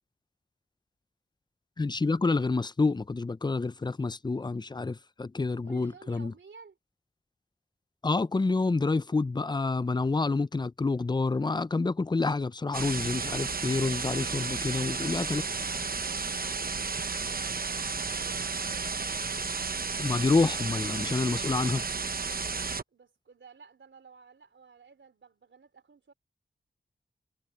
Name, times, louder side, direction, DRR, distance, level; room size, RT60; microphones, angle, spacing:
voice 1, 1.8-6.3 8.0-15.4 20.0-21.8, left 3 dB, 20° left, 0.5 m, -28 dB
voice 2, 5.6-6.8 14.8-18.9 22.9-26.1, right 5 dB, 80° right, 4.0 m, -54 dB
sound 1, 12.7-22.8, right 4 dB, 50° right, 0.9 m, -33 dB
cardioid pair, 50°, 19 cm